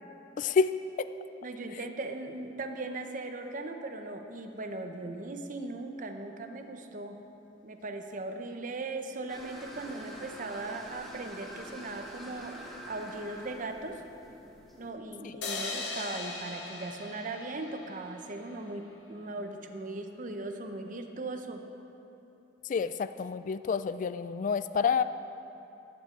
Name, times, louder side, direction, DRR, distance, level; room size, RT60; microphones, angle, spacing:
voice 1, 0.4-0.7 22.7-25.0, left 5 dB, 45° left, 13 dB, 0.3 m, -28 dB
voice 2, 1.4-7.2 7.6-12.6 12.9-14.0 14.8-21.6, right 2 dB, 45° right, 5 dB, 0.8 m, -38 dB
sound 1, 9.3-14.9, equal, ahead, 1.9 m, -46 dB
sound 2, 15.4-18.7, left 3 dB, 75° left, 1.7 m, -39 dB
15.0 x 12.5 x 3.8 m, 2.9 s
head